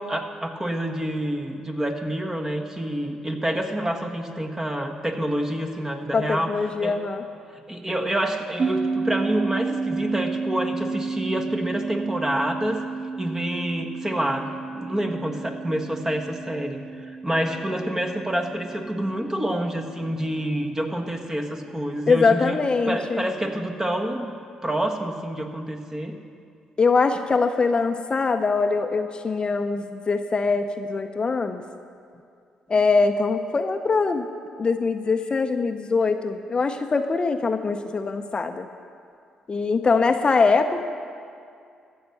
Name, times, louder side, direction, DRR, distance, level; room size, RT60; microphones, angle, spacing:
voice 1, 0.0-6.5 6.8-6.9 7.5-12.8 13.2-22.6 22.9-24.3 24.6-26.2, right 1 dB, 20° right, 3 dB, 1.4 m, -27 dB
voice 2, 6.1-7.2 22.1-23.3 26.8-31.6 32.7-34.3 34.6-38.7 39.5-40.8, left 4 dB, 40° left, 7 dB, 0.7 m, -22 dB
sound 1, 8.6-21.4, right 4 dB, 45° right, 0.3 m, -32 dB
14.5 x 6.5 x 7.1 m, 2.3 s
hypercardioid pair, 50°, 3 cm